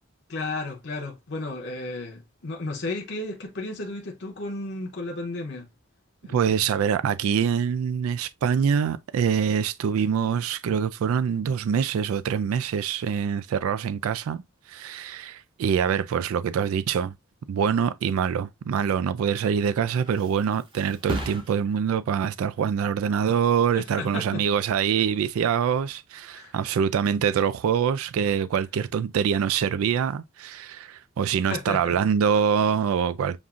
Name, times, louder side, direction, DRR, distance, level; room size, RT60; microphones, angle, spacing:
voice 1, 0.3-5.7 6.2-6.6 23.7-24.4 26.3-26.5 31.5-32.0, left 2 dB, 55° left, 0.7 m, -33 dB
voice 2, 6.3-17.1 17.5-33.4, right 7 dB, 80° right, 0.3 m, -25 dB
Thump thud, 19.7-27.0 27.4-27.8, right 1 dB, 25° right, 0.7 m, -40 dB
7.0 x 2.5 x 2.4 m
head